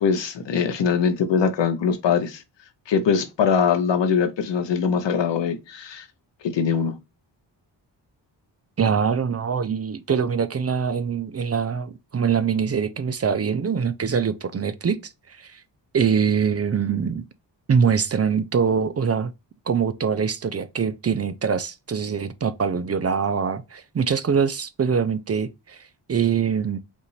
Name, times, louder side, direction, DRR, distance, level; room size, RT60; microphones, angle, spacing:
voice 1, 0.0-2.4 2.9-6.0 6.4-7.0, left 6 dB, 75° left, 0.9 m, -22 dB
voice 2, 8.8-15.6 15.9-17.2 17.7-19.3 19.7-26.8, right 6 dB, 35° right, 0.5 m, -23 dB
5.3 x 2.5 x 3.2 m
cardioid pair, 75°, 44 cm